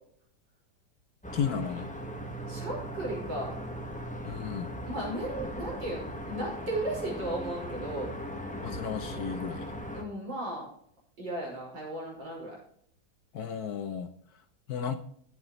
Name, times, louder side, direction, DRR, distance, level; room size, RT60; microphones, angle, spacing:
sound 1, 1.2-10.0, equal, 5° left, 1.2 m, -39 dB
voice 1, 1.3-1.9 4.2-4.7 8.6-9.8 13.3-14.1 14.7-15.0, left 7 dB, 65° left, 9 dB, 1.2 m, -33 dB
voice 2, 2.5-3.6 4.8-8.1 9.9-10.7 11.2-12.6, right 1 dB, 70° right, -3 dB, 6.1 m, -35 dB
12.5 x 9.8 x 3.1 m, 0.66 s
omnidirectional pair, 2.0 m